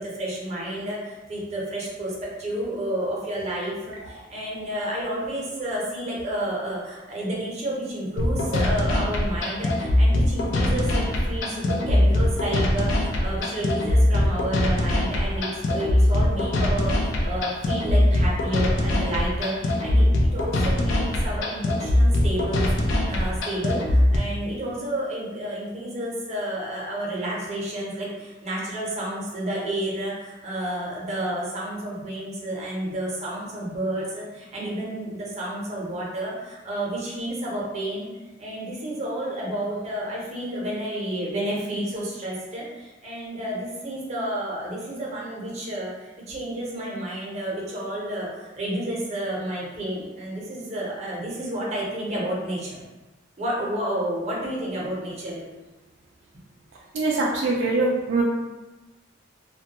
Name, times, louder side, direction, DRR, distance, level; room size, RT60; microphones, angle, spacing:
voice 1, 0.0-38.1 38.4-52.8 53.4-55.4, right 1 dB, 35° right, -5 dB, 0.7 m, -30 dB
sound 1, 8.2-24.2, left 1 dB, 75° left, 0.4 m, -22 dB
voice 2, 56.9-58.2, right 3 dB, 70° right, -3 dB, 0.3 m, -23 dB
2.2 x 2.1 x 2.8 m, 1.2 s
head